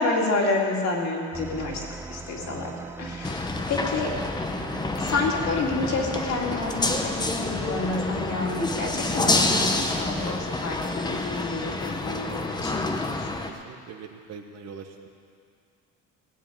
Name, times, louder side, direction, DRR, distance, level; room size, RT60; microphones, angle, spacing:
voice 1, 0.0-2.7 3.0-4.1 5.0-13.3, left 3 dB, 55° left, -1 dB, 2.6 m, -29 dB
sound 1, 1.3-10.3, right 3 dB, 10° right, 0.3 m, -40 dB
sound 2, 3.2-13.5, left 2 dB, 15° left, 0.8 m, -28 dB
voice 2, 13.5-15.1, right 6 dB, 50° right, 4 dB, 1.3 m, -41 dB
17.0 x 7.1 x 9.2 m, 2.3 s
cardioid pair, 160°, 33 cm